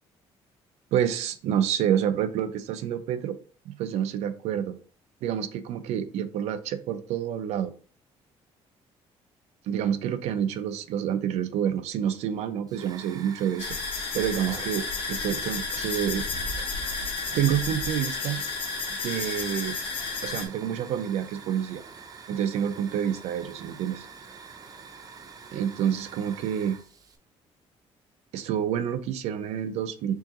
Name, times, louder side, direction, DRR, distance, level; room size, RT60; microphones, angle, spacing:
voice 1, 0.9-3.4 3.7-4.8 5.2-7.7 9.7-13.8 14.1-16.2 16.5-16.8 17.3-18.4 19.0-19.8 20.2-21.8 22.3-24.1 25.5-26.8 28.3-30.1, right 9 dB, 85° right, 9 dB, 0.6 m, -28 dB
Hiss / Fire, 12.7-27.2, right 5 dB, 35° right, 0.7 m, -46 dB
sound 1, 13.6-20.5, left 4 dB, 60° left, 1.1 m, -32 dB
4.6 x 3.8 x 3.0 m, 0.40 s
cardioid pair, 150°, 11 cm